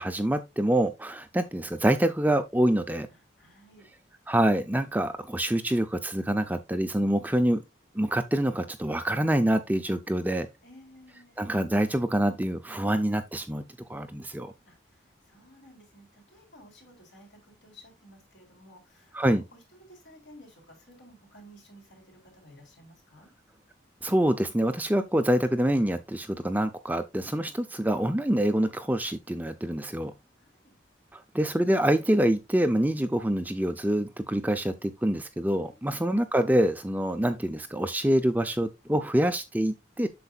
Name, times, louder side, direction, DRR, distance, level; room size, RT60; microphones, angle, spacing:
voice 1, 0.0-3.1 4.3-7.6 7.9-10.5 11.4-13.6 13.9-14.5 19.1-19.4 24.0-30.1 31.1-40.1, right 1 dB, 10° right, 0.5 m, -26 dB
voice 2, 3.1-3.9 10.6-11.4 14.7-19.4 19.7-23.3 30.4-30.8 35.7-36.1, equal, 70° left, 3.9 m, -54 dB
8.1 x 6.7 x 2.4 m
head